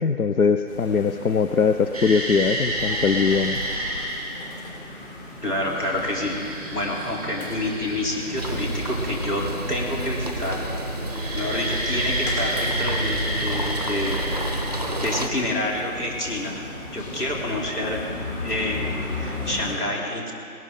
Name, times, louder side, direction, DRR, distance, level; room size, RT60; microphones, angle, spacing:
voice 1, 0.0-3.6, left 5 dB, 65° left, 8 dB, 0.6 m, -21 dB
sound 1, 0.7-19.7, left 2 dB, 45° left, 4.2 m, -37 dB
sound 2, 1.9-4.4 5.6-9.4 11.0-15.0 18.0-18.1 19.2-19.6, right 1 dB, 5° left, 0.9 m, -30 dB
voice 2, 5.4-10.6 11.3-14.2 15.0-16.6 16.9-18.0 18.4-20.3, left 1 dB, 90° left, -2 dB, 3.4 m, -28 dB
sound 3, 8.4-15.3, right 1 dB, 25° right, 0.6 m, -29 dB
19.0 x 12.0 x 3.8 m, 2.4 s
figure-of-eight pair, 160°, 45 cm